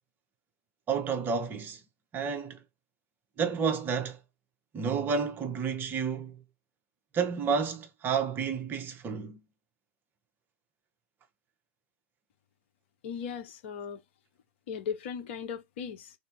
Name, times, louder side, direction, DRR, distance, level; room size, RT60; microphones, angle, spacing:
voice 1, 0.9-1.8 2.1-2.6 3.4-4.2 4.7-6.4 7.1-9.4, right 6 dB, 25° right, 0.9 m, -30 dB
voice 2, 13.0-14.0 14.7-16.1, left 7 dB, 55° left, 1.0 m, -37 dB
3.4 x 2.7 x 3.6 m
figure-of-eight pair, 95°, 8 cm